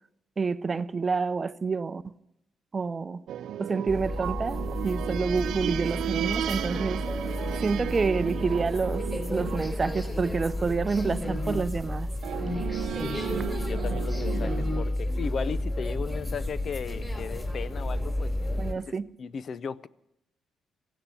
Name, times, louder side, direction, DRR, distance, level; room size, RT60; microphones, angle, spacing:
voice 1, 0.4-2.1 2.7-3.2 3.6-7.0 7.6-12.1 18.6-19.1, right 4 dB, 35° right, 0.6 m, -28 dB
sound 1, 3.3-11.1 12.2-14.8, right 11 dB, 75° right, 0.6 m, -35 dB
sound 2, 3.9-18.7, left 1 dB, 20° left, 3.4 m, -31 dB
voice 2, 13.0-18.3 19.2-19.9, left 6 dB, 50° left, 0.5 m, -36 dB
16.0 x 9.9 x 8.3 m
cardioid pair, 90°, 0 cm